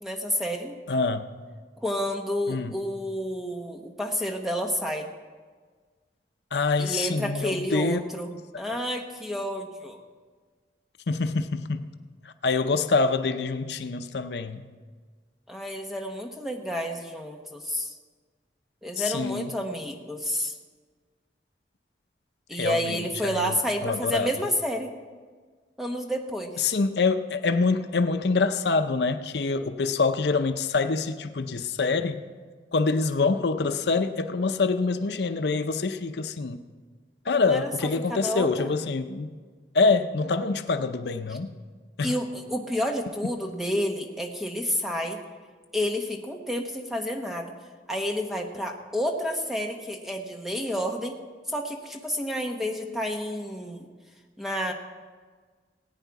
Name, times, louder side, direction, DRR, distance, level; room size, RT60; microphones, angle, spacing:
voice 1, 0.0-0.8 1.8-5.1 6.8-8.3 8.6-10.0 15.5-17.9 18.8-20.6 22.5-24.9 25.8-26.5 37.4-37.7 38.1-38.7 42.0-45.2 45.7-47.5 47.9-51.2 51.5-53.9 54.4-54.7, equal, ahead, 2 dB, 1.1 m, -30 dB
voice 2, 0.9-1.3 2.5-2.8 6.5-8.0 8.7-8.8 11.1-11.9 12.2-14.6 19.0-19.5 22.5-24.3 26.6-32.2 32.7-36.6 37.2-39.3 39.7-41.5 42.0-42.1, left 4 dB, 70° left, 9 dB, 0.6 m, -25 dB
18.5 x 9.1 x 4.8 m, 1.5 s
head